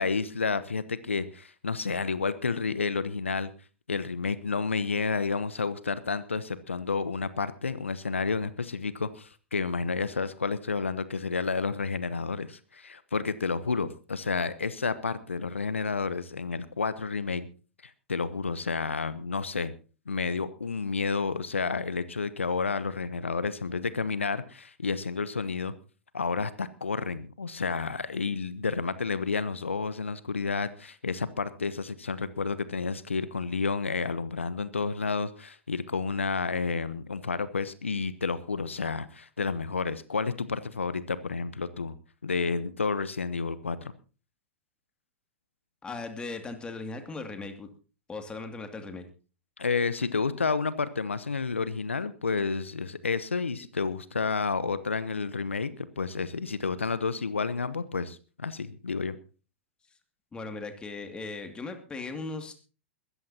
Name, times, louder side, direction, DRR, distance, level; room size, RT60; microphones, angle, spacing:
voice 1, 0.0-3.5 3.9-17.5 17.8-19.7 20.1-25.7 26.1-41.9 42.2-43.9 49.6-59.1, left 4 dB, 85° left, 15 dB, 0.9 m, -30 dB
voice 2, 45.8-47.7 48.1-49.1 60.3-62.5, left 3 dB, 15° left, 6 dB, 2.4 m, -38 dB
21.5 x 14.0 x 2.8 m, 0.35 s
figure-of-eight pair, 105°, 7 cm